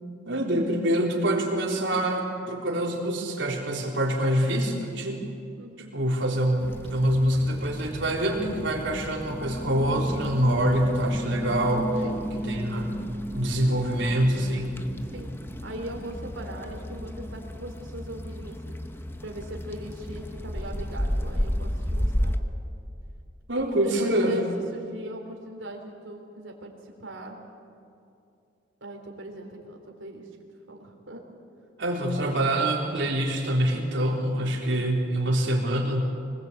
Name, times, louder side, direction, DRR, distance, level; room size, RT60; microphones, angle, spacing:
voice 1, 0.3-5.3 5.9-11.9 12.5-12.9 13.3-14.8 23.5-24.4 31.8-36.1, right 1 dB, 70° right, -1 dB, 3.9 m, -25 dB
voice 2, 5.6-5.9 12.0-12.2 15.1-15.3 15.6-18.7 19.2-22.4 23.7-24.4 24.7-27.4 28.8-30.3 30.7-31.2, right 1 dB, 90° right, 1 dB, 3.5 m, -40 dB
sound 1, 6.6-22.4, equal, 10° left, 0.9 m, -33 dB
24.5 x 19.5 x 8.2 m, 2.5 s
head